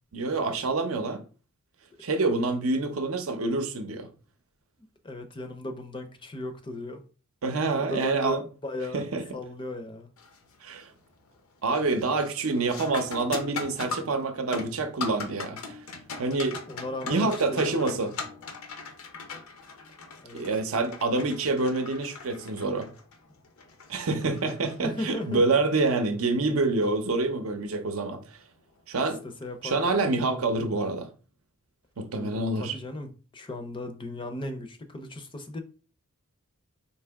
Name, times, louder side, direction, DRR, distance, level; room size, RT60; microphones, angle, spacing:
voice 1, 0.1-1.2 2.0-4.1 7.4-8.4 8.9-9.2 10.6-10.9 11.6-15.8 16.2-16.6 17.1-18.1 20.3-22.9 23.9-28.2 28.9-29.2 29.6-31.1 32.0-32.8, right 3 dB, 70° right, 0.7 m, -27 dB
voice 2, 5.0-7.0 7.5-9.1 9.3-10.1 16.7-18.5 20.2-20.4 24.8-25.8 29.4-30.1 32.1-35.6, left 1 dB, 25° left, 0.5 m, -37 dB
sound 1, 10.2-10.6 11.0-11.4 11.7-25.3 27.8-27.9 28.7-28.9, left 4 dB, 70° left, 0.7 m, -40 dB
4.5 x 2.8 x 3.4 m
head